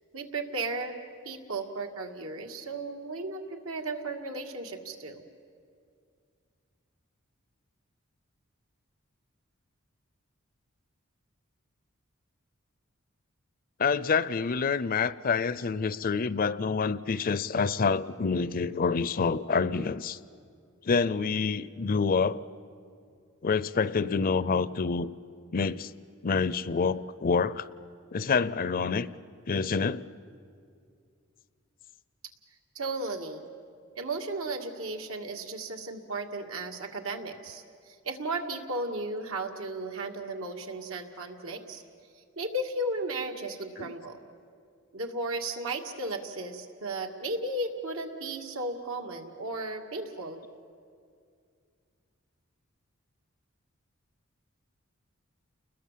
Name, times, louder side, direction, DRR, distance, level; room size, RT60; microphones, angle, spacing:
voice 1, 0.1-1.0 1.2-5.2 32.7-33.5 34.0-41.8 42.4-44.2 44.9-50.4, right 2 dB, 85° right, 3 dB, 2.1 m, -35 dB
voice 2, 13.8-20.2 20.9-22.4 23.4-25.1 25.5-25.9 26.2-27.7 28.1-29.1 29.5-30.0 43.8-43.9, left 5 dB, 45° left, 18 dB, 0.5 m, -27 dB
30.0 x 21.0 x 7.5 m, 2.3 s
head